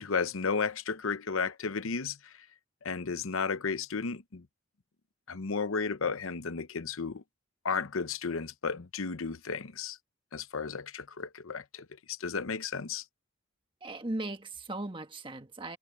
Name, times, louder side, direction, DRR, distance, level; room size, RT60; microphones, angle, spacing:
voice 1, 0.0-2.3 2.8-4.5 5.3-7.2 7.6-10.0 10.3-13.0, left 5 dB, 80° left, 0.8 m, -33 dB
voice 2, 13.8-15.8, right 2 dB, 25° right, 1.5 m, -37 dB
head